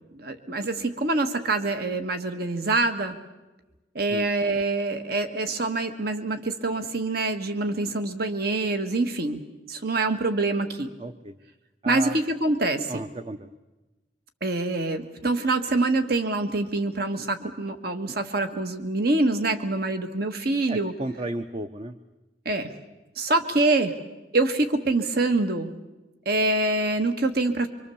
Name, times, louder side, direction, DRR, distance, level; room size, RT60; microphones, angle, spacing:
voice 1, 0.0-3.2 3.9-10.9 11.8-12.9 14.4-20.9 22.4-22.7 23.2-23.9 24.3-25.7 26.2-27.7, right 2 dB, 60° right, 8 dB, 1.5 m, -25 dB
voice 2, 11.0-11.4 11.8-12.2 12.9-13.5 20.7-22.0, right 1 dB, 35° right, 9 dB, 0.7 m, -34 dB
25.5 x 24.5 x 7.1 m, 1.1 s
head